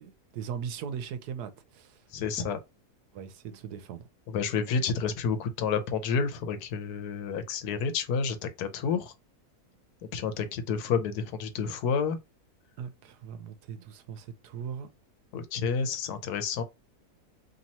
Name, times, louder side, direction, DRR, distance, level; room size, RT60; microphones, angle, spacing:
voice 1, 0.0-2.0 2.4-2.5 3.1-4.1 12.8-14.9, right 7 dB, 85° right, 1.2 m, -39 dB
voice 2, 2.1-2.6 4.3-9.1 10.1-12.2 15.3-16.6, left 6 dB, 75° left, 1.2 m, -30 dB
3.0 x 2.9 x 4.0 m
omnidirectional pair, 1.7 m